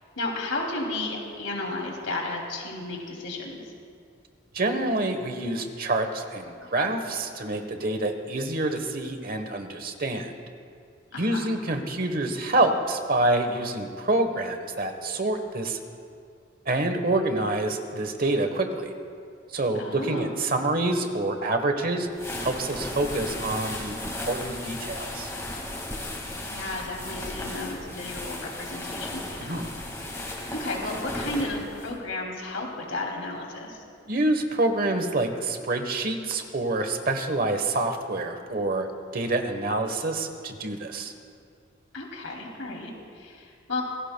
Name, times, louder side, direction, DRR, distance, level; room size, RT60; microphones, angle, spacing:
voice 1, 0.2-3.6 11.1-11.5 19.8-20.3 26.5-29.7 30.1-30.2 30.5-33.8 41.9-43.8, left 2 dB, 90° left, 0 dB, 2.7 m, -33 dB
voice 2, 4.5-10.3 11.2-15.8 16.7-18.9 19.5-22.1 22.4-25.3 29.4-29.7 34.0-38.9 39.1-41.1, right 2 dB, 45° right, 6 dB, 1.1 m, -27 dB
sound 1, 22.1-31.9, left 1 dB, 15° left, 1.9 m, -35 dB
26.0 x 17.0 x 2.2 m, 2.3 s
head